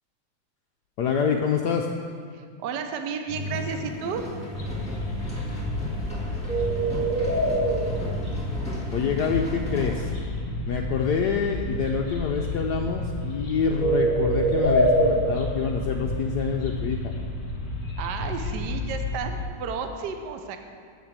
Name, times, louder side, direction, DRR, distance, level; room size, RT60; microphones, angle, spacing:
voice 1, 1.0-1.9 8.9-10.1 10.7-17.1, left 6 dB, 80° left, 2 dB, 0.9 m, -26 dB
voice 2, 2.3-4.3 18.0-20.6, right 5 dB, 65° right, 6 dB, 1.1 m, -32 dB
sound 1, 3.3-10.1, equal, 5° left, 1.5 m, -35 dB
sound 2, 4.6-19.4, equal, 25° left, 1.4 m, -28 dB
8.0 x 7.4 x 7.3 m, 2.1 s
omnidirectional pair, 2.4 m